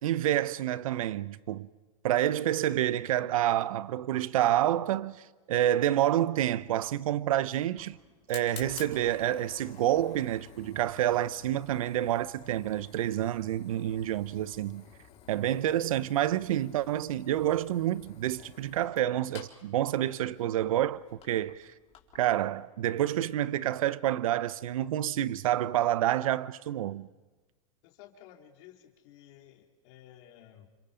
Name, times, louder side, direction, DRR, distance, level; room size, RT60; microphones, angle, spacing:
voice 1, 0.0-1.7 2.0-5.2 5.5-8.0 8.3-14.8 15.3-21.0 21.3-21.6 22.1-27.1, right 12 dB, 80° right, 0.9 m, -28 dB
Fire, 6.6-22.3, left 9 dB, 40° left, 4.0 m, -52 dB
voice 2, 27.8-30.7, left 11 dB, 60° left, 3.8 m, -54 dB
29.0 x 26.0 x 5.2 m
hypercardioid pair, 115°, 18 cm